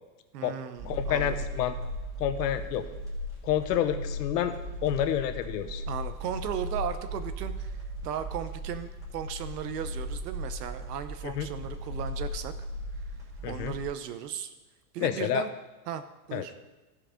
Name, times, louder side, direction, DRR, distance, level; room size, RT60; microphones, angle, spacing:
voice 1, 0.3-1.4 5.9-7.8 8.0-12.5 13.5-14.5 14.9-15.5 15.9-16.0 16.3-16.5, right 9 dB, 70° right, 11 dB, 1.0 m, -36 dB
voice 2, 0.8-1.7 2.2-2.9 3.4-4.6 4.8-5.8 11.2-11.5 13.4-13.7 15.0-15.4 16.3-16.4, left 10 dB, 75° left, 10 dB, 1.0 m, -28 dB
sound 1, 0.8-13.8, equal, 5° right, 2.6 m, -37 dB
13.5 x 5.0 x 5.1 m, 1.1 s
supercardioid pair, 165°, 49 cm